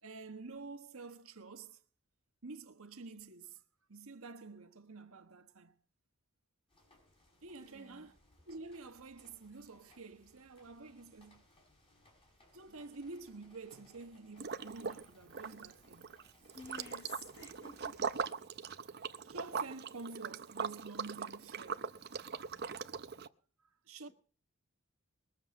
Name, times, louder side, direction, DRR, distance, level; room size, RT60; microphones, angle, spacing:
voice 1, 0.0-1.8 2.4-3.6 3.9-5.8 7.4-8.2 8.4-11.4 12.5-16.2 19.2-21.9 23.6-24.1, right 3 dB, 80° right, 1.3 m, -49 dB
sound 1, 6.7-18.3, left 1 dB, 25° left, 5.5 m, -66 dB
voice 2, 7.5-8.1 16.5-17.9, left 3 dB, 55° left, 6.0 m, -52 dB
Liquid, 14.4-15.1 15.3-23.3, right 6 dB, 50° right, 0.7 m, -41 dB
21.0 x 7.3 x 6.4 m
head